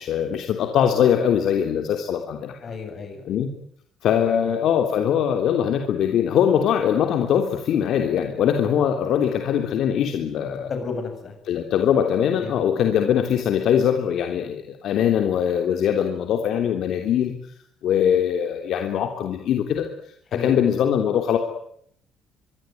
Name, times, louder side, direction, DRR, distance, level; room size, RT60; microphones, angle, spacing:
voice 1, 0.0-2.6 3.3-3.5 4.0-10.7 11.5-17.3 17.8-19.9 20.3-21.4, left 9 dB, 55° left, 4 dB, 3.2 m, -22 dB
voice 2, 2.6-3.4 4.3-4.5 10.7-11.3 12.4-12.7 20.3-20.6, left 4 dB, 35° left, 6 dB, 7.7 m, -32 dB
25.0 x 23.5 x 9.4 m, 0.68 s
cardioid pair, 170°, 0 cm